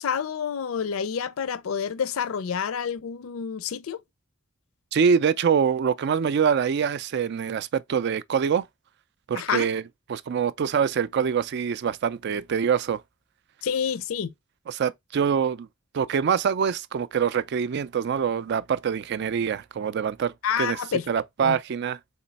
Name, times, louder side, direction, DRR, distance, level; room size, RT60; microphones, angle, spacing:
voice 1, 0.0-4.0 9.4-9.7 13.6-14.3 20.4-21.1 21.4-21.6, left 7 dB, 75° left, 0.4 m, -28 dB
voice 2, 4.9-8.7 9.3-9.8 10.1-13.0 14.7-15.7 15.9-20.3 20.6-20.8 21.1-22.0, right 7 dB, 55° right, 0.4 m, -24 dB
4.1 x 3.0 x 4.0 m
head